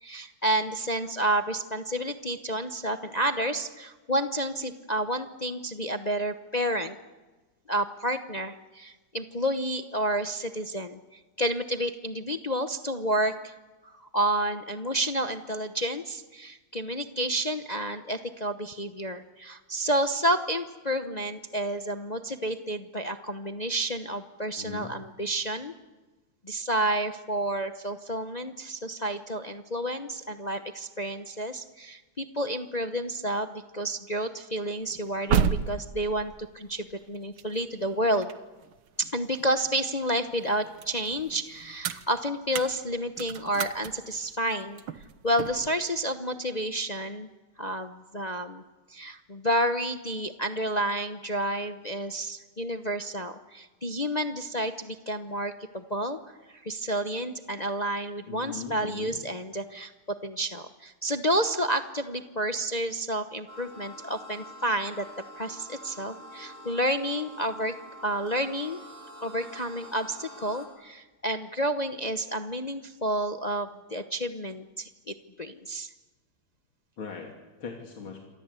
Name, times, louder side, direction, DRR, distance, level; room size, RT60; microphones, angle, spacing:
voice 1, 0.0-7.0 7.7-13.5 13.8-25.7 26.4-38.3 39.0-44.8 45.2-47.3 47.6-48.6 48.9-65.1 65.4-67.7 68.0-68.8 69.2-75.9, right 1 dB, 35° left, 8 dB, 0.6 m, -30 dB
voice 2, 24.6-24.9 58.3-59.2 77.0-78.2, left 5 dB, 80° left, 1 dB, 3.6 m, -40 dB
sound 1, 34.8-39.9 40.3-45.7, right 8 dB, 90° right, 1.9 m, -33 dB
sound 2, 63.5-70.7, equal, 40° right, 5.7 m, -46 dB
28.0 x 24.0 x 8.3 m, 1.2 s
omnidirectional pair, 2.2 m